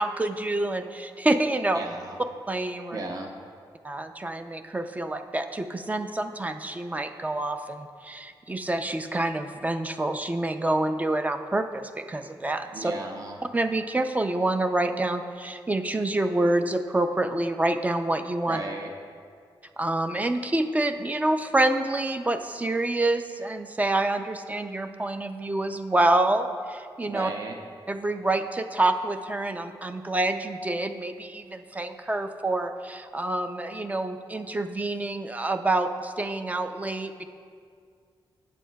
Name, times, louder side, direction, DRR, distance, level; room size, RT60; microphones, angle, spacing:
voice 1, 0.0-1.8 2.5-3.0 3.8-12.9 13.5-18.6 19.8-27.3 27.9-37.2, right 2 dB, 15° right, 7 dB, 0.4 m, -27 dB
voice 2, 1.7-2.2 2.9-3.3 12.7-13.4 18.5-18.9 27.1-27.6, right 2 dB, 45° right, 2 dB, 0.8 m, -35 dB
13.5 x 8.5 x 2.3 m, 2.2 s
wide cardioid pair, 120°, 9 cm